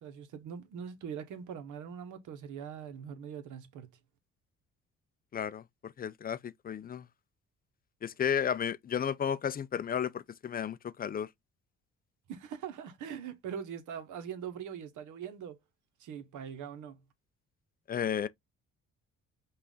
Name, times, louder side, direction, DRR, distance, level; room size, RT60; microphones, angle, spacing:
voice 1, 0.0-3.9 12.3-15.6 16.0-17.0, right 8 dB, 80° right, 1.1 m, -42 dB
voice 2, 5.3-7.1 8.0-11.3 17.9-18.3, left 8 dB, 30° left, 0.4 m, -33 dB
5.5 x 2.5 x 3.8 m
cardioid pair, 90°, 30 cm